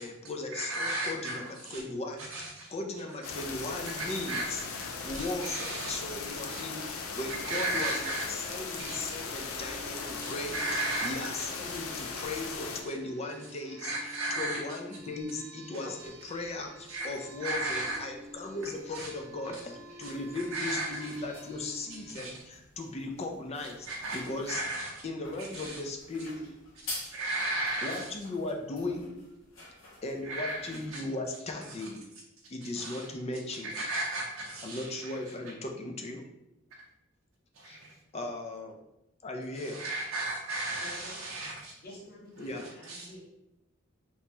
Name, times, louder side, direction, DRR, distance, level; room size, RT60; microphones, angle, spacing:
voice 1, 0.0-4.6 5.0-13.9 14.3-23.9 24.1-24.6 25.0-26.5 27.8-29.2 30.0-32.0 32.5-33.7 34.6-36.2 37.6-37.8 38.1-38.8 39.2-39.8 42.4-42.7, left 2 dB, 30° left, 0.4 m, -37 dB
voice 2, 0.5-1.8 2.2-2.7 4.0-4.4 4.7-4.8 5.1-6.0 6.5-6.6 7.3-8.2 8.8-9.2 10.2-11.8 12.1-12.2 12.8-12.9 13.8-14.6 16.9-17.1 17.4-18.0 18.9-19.1 20.0-20.1 20.5-21.1 22.1-22.3 23.8-24.2 24.5-24.9 25.4-25.8 27.1-28.1 30.2-31.0 32.6-33.1 33.6-35.2 37.5-37.9 39.5-41.7 42.6-43.0, right 2 dB, 75° right, 0.5 m, -35 dB
sound 1, 3.2-12.8, left 4 dB, 90° left, 0.5 m, -38 dB
sound 2, 8.8-22.2, equal, 35° right, 0.8 m, -50 dB
sound 3, 15.9-31.1, left 2 dB, 75° left, 1.1 m, -50 dB
voice 3, 40.8-41.2 41.8-43.2, left 1 dB, 45° left, 0.9 m, -48 dB
3.0 x 2.8 x 3.4 m
head